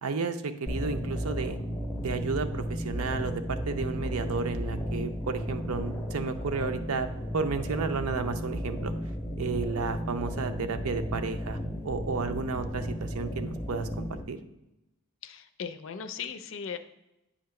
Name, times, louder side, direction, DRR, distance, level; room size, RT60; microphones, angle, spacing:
voice 1, 0.0-1.6 2.0-7.1 7.3-8.9 9.4-11.6 11.8-14.4, right 4 dB, 90° right, 8 dB, 0.6 m, -32 dB
sound 1, 0.7-14.2, equal, 10° left, 0.5 m, -34 dB
voice 2, 15.2-16.8, left 6 dB, 60° left, 10 dB, 0.4 m, -38 dB
8.5 x 2.9 x 5.8 m, 0.94 s
head